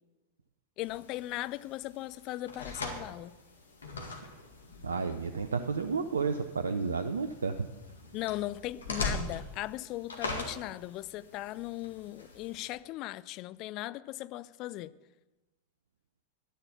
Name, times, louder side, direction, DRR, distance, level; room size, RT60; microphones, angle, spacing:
sound 1, 0.8-12.7, left 3 dB, 70° left, 1.9 m, -42 dB
voice 1, 0.8-3.4 8.1-14.9, left 16 dB, 40° left, 0.4 m, -38 dB
voice 2, 4.8-7.7, right 5 dB, 70° right, 0.5 m, -31 dB
11.5 x 10.5 x 5.8 m
figure-of-eight pair, 90°, 0 cm